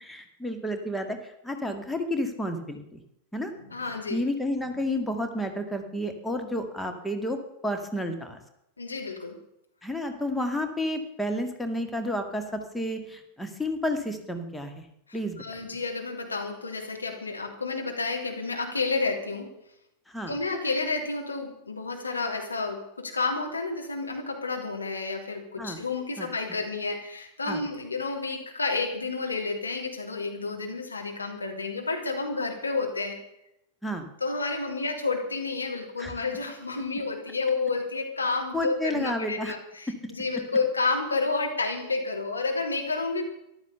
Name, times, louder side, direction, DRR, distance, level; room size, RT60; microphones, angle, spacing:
voice 1, 0.0-3.0 3.3-3.5 4.1-8.4 9.8-14.8 15.1-15.4 20.1-20.3 25.6-25.8 26.2-26.3 27.5-27.6 33.8-34.1 36.0-36.1 38.5-39.5, left 1 dB, 5° left, 5 dB, 2.0 m, -31 dB
voice 2, 3.5-4.2 8.8-9.4 15.1-19.5 20.3-33.2 34.2-43.3, left 3 dB, 80° left, 2 dB, 3.1 m, -30 dB
14.5 x 12.0 x 6.9 m, 0.81 s
figure-of-eight pair, 90°, 0 cm